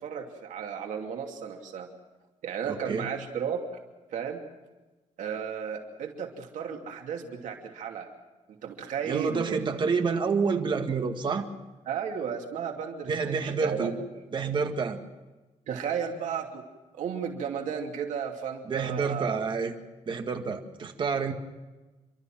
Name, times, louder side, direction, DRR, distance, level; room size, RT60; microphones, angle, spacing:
voice 1, 0.0-1.9 2.4-3.6 4.1-4.4 5.2-8.1 8.5-9.9 11.9-14.1 15.7-16.6 16.9-19.4, right 7 dB, 80° right, 2 dB, 2.8 m, -34 dB
voice 2, 2.7-3.1 9.1-11.5 13.1-13.9 14.3-15.0 18.7-19.7 20.1-21.3, right 5 dB, 40° right, 5 dB, 2.0 m, -28 dB
29.5 x 13.0 x 7.6 m, 1.2 s
cardioid pair, 150°, 13 cm